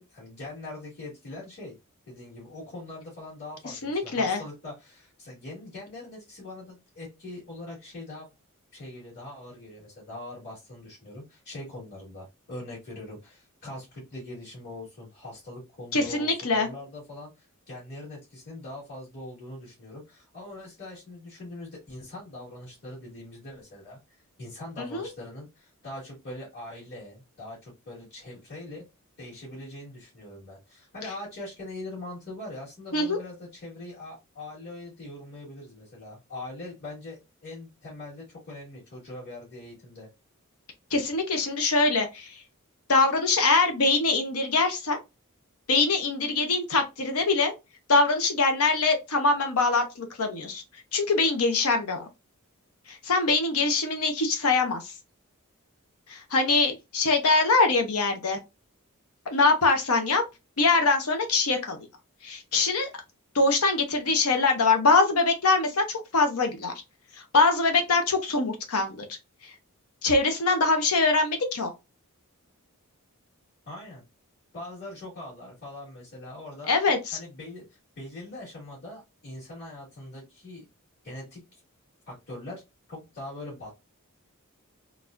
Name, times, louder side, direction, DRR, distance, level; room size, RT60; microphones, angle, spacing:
voice 1, 0.0-1.8 2.1-8.3 8.7-28.8 29.2-40.1 73.7-74.0 74.5-80.6 81.0-81.6 82.1-82.6 82.9-83.7, left 2 dB, 50° left, 2.2 m, -42 dB
voice 2, 3.8-4.4 15.9-16.7 24.8-25.1 32.9-33.2 40.9-42.3 42.9-45.0 45.7-47.5 47.9-50.6 50.9-52.1 52.9-54.9 56.1-58.4 59.3-60.2 60.6-61.8 62.2-62.9 63.3-66.7 67.3-69.1 69.4-69.5 70.0-71.7 76.7-77.2, left 3 dB, 75° left, 0.8 m, -23 dB
4.0 x 2.3 x 2.5 m
head